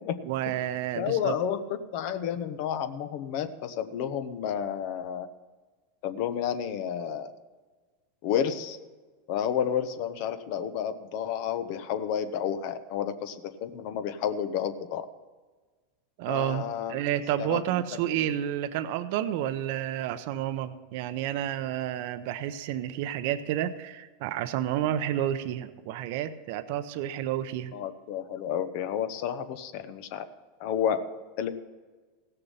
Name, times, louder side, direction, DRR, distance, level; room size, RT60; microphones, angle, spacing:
voice 1, 0.2-1.3 16.2-27.7, right 11 dB, 65° right, 11 dB, 0.7 m, -30 dB
voice 2, 0.9-5.3 6.0-7.3 8.2-8.8 9.3-15.1 16.3-17.0 17.4-17.6 17.9-18.3 27.7-30.2 30.6-31.0 31.4-31.5, left 9 dB, 60° left, 10 dB, 0.9 m, -31 dB
16.5 x 6.7 x 5.6 m, 1.3 s
supercardioid pair, 115°, 0 cm